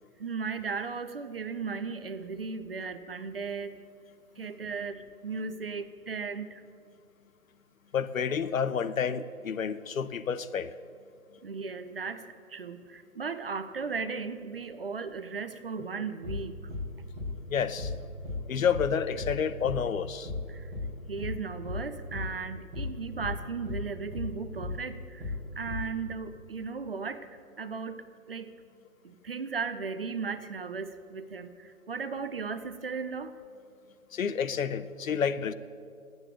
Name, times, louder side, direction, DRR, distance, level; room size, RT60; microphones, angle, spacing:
voice 1, 0.2-3.8 4.4-6.6 11.4-12.2 12.5-16.6 20.5-20.7 21.1-28.5 29.0-33.4, right 5 dB, 40° right, 11 dB, 0.6 m, -36 dB
voice 2, 7.9-10.7 17.5-17.9 18.5-20.3 34.1-35.5, left 7 dB, 65° left, 15 dB, 0.7 m, -29 dB
sound 1, 16.2-16.4 16.7-16.9 17.2-17.4 17.8-18.0 18.2-18.4 18.7-18.9 19.2-19.4 19.6-19.8 20.2-20.4 20.7-20.9 21.2-21.4 21.6-21.8 22.1-22.3 22.7-22.9 23.2-23.4 23.7-23.9 24.1-24.3 24.6-24.8 25.2-25.4 25.7-25.9, left 3 dB, 10° right, 2.0 m, -35 dB
9.8 x 8.1 x 8.3 m, 2.3 s
figure-of-eight pair, 150°, 43 cm